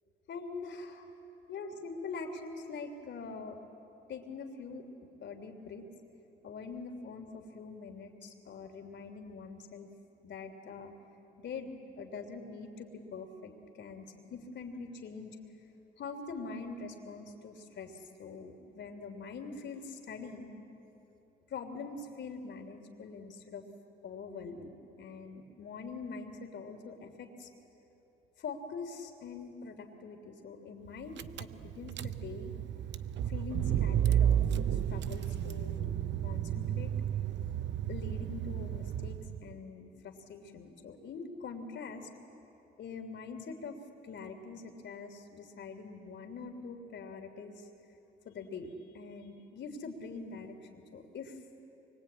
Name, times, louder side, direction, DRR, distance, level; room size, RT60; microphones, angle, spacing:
voice 1, 0.3-1.1 1.5-3.6 4.1-5.9 6.4-9.9 10.2-10.9 11.4-15.4 16.0-20.5 21.5-23.6 24.0-24.7 25.0-27.5 28.4-32.5 33.3-35.9 36.2-36.9 37.9-42.1 42.8-43.8 44.0-47.7 48.2-51.4, left 4 dB, 65° left, 5 dB, 3.2 m, -44 dB
Car / Engine, 30.9-31.0 31.2-39.5, right 10 dB, 65° right, 0.8 m, -32 dB
25.0 x 23.5 x 8.9 m, 3.0 s
cardioid pair, 90°, 20 cm